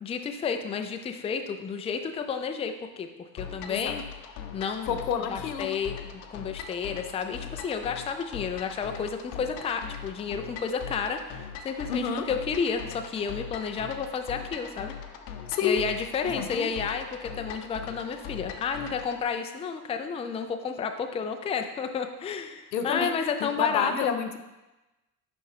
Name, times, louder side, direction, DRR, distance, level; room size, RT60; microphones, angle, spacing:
voice 1, 0.0-4.0 4.5-4.9 5.3-15.0 15.6-24.2, left 6 dB, 15° left, 7 dB, 0.4 m, -31 dB
sound 1, 3.4-19.2, left 7 dB, 55° left, 0.8 m, -41 dB
voice 2, 4.9-5.7 11.9-12.3 15.5-15.8 16.2-16.7 22.7-23.1 23.6-24.4, left 7 dB, 90° left, 7 dB, 0.6 m, -29 dB
5.8 x 5.2 x 3.3 m, 1.0 s
hypercardioid pair, 60°, 50 cm